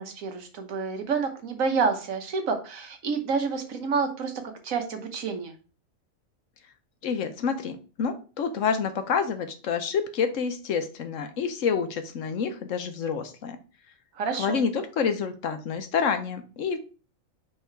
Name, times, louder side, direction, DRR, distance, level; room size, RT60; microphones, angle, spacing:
voice 1, 0.0-5.5 14.1-14.6, right 5 dB, 80° right, 5 dB, 1.5 m, -29 dB
voice 2, 7.0-13.6 14.4-16.8, left 6 dB, 70° left, 8 dB, 1.2 m, -28 dB
5.7 x 3.8 x 4.5 m, 0.35 s
omnidirectional pair, 1.4 m